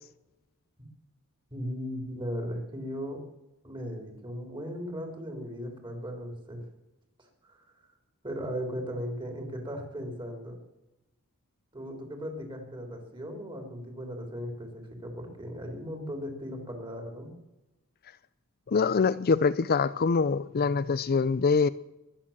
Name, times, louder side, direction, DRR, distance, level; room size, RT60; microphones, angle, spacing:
voice 1, 1.5-3.2 3.6-6.6 7.4-7.6 8.2-10.6 11.7-17.3, equal, 20° right, 3.8 m, -37 dB
voice 2, 18.7-21.7, left 5 dB, 45° left, 0.5 m, -24 dB
22.5 x 8.8 x 7.4 m
head